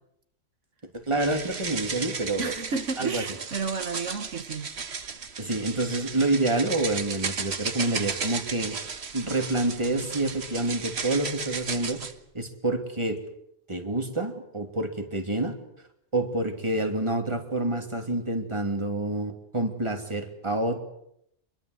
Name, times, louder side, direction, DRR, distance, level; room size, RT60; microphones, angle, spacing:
voice 1, 0.9-2.5 3.0-3.2 5.4-8.8 9.1-12.0 12.3-13.2 13.7-15.6 16.1-20.8, right 2 dB, 25° right, 3.0 m, -28 dB
sound 1, 1.1-12.1, right 5 dB, 60° right, 1.7 m, -35 dB
voice 2, 2.4-4.7, right 4 dB, 75° right, 1.8 m, -32 dB
26.0 x 22.5 x 8.0 m
omnidirectional pair, 1.3 m